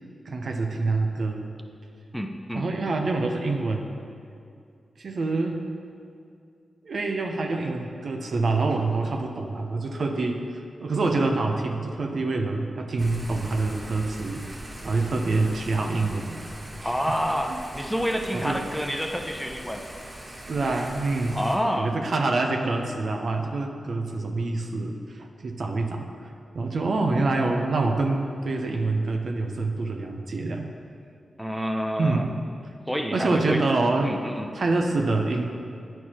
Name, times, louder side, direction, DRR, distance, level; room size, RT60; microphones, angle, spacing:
voice 1, 0.3-1.5 2.5-3.9 5.0-5.7 6.8-16.4 16.8-16.9 17.5-17.6 18.3-18.6 20.5-21.4 21.7-26.3 26.5-30.7 32.0-32.3 33.1-34.1 34.5-35.5, right 3 dB, 70° right, 3 dB, 0.7 m, -26 dB
voice 2, 2.1-2.6 16.8-19.8 21.3-21.9 31.4-32.3 32.9-33.6 34.0-34.5, equal, ahead, 4 dB, 0.7 m, -28 dB
Thunder / Rain, 13.0-21.6, right 1 dB, 40° right, 1.7 m, -41 dB
9.1 x 4.6 x 4.3 m, 2.4 s
cardioid pair, 40°, 0 cm